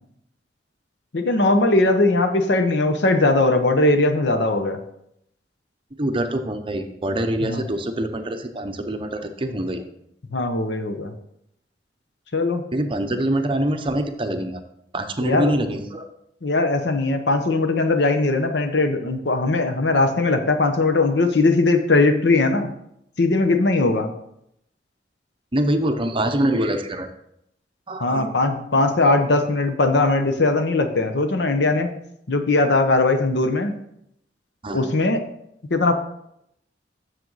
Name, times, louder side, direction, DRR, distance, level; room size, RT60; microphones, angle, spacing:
voice 1, 1.1-4.8 7.4-7.7 10.3-11.1 12.3-12.6 13.1-13.2 15.2-15.5 16.4-22.7 23.2-24.1 28.0-31.9 32.3-33.7 34.7-35.2 35.7-35.9, left 2 dB, 65° left, 7 dB, 0.8 m, -20 dB
voice 2, 6.0-9.1 9.4-9.9 12.7-14.6 14.9-16.0 25.5-27.1 27.9-28.3 34.6-34.8, right 1 dB, 30° right, 6 dB, 0.7 m, -24 dB
7.6 x 6.6 x 4.0 m, 0.76 s
head